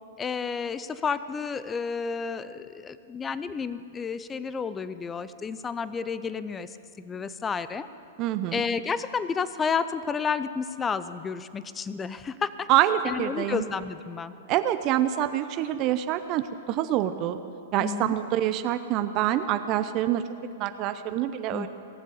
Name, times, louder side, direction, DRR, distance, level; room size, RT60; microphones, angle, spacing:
voice 1, 0.2-7.9 8.5-12.7 13.0-14.3 17.8-18.1 21.5-21.7, left 5 dB, 20° left, 14 dB, 0.5 m, -31 dB
voice 2, 8.2-8.6 12.7-13.7 14.5-17.4 17.7-20.2 20.6-21.7, right 12 dB, 40° right, 10 dB, 0.6 m, -26 dB
19.0 x 7.4 x 9.5 m, 2.6 s
hypercardioid pair, 120°, 0 cm